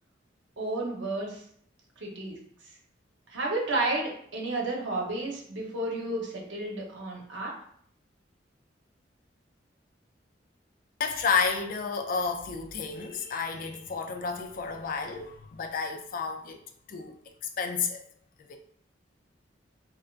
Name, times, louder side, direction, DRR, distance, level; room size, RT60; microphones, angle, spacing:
voice 1, 0.6-1.4 2.0-2.4 3.3-7.5, right 2 dB, 80° right, 0.9 m, -31 dB
voice 2, 11.0-16.6 16.9-17.2 17.6-18.0 18.5-18.6, left 5 dB, 50° left, 0.3 m, -31 dB
3.2 x 2.6 x 2.4 m
head